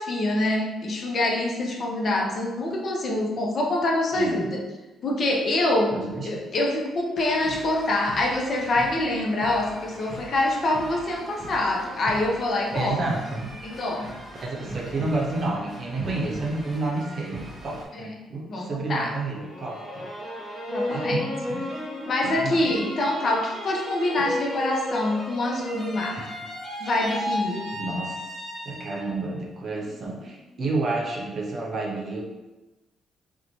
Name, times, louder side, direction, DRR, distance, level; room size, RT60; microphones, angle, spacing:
voice 1, 0.0-4.6 5.0-6.0 6.2-13.0 13.6-14.1 17.9-18.1 18.5-19.1 20.7-21.3 22.1-26.3 26.8-27.8, left 1 dB, 50° left, 0 dB, 0.5 m, -25 dB
voice 2, 4.1-4.5 5.9-6.3 12.7-13.5 14.4-20.1 20.9-21.7 22.2-22.7 26.2-26.3 27.7-28.2 28.6-32.2, right 2 dB, 50° right, -1 dB, 0.6 m, -30 dB
sound 1, 7.2-17.9, right 1 dB, 20° right, 1.0 m, -40 dB
sound 2, 19.4-29.2 29.6-30.3, left 1 dB, 35° left, 1.1 m, -34 dB
2.6 x 2.1 x 2.9 m, 1.1 s
cardioid pair, 90°, 0 cm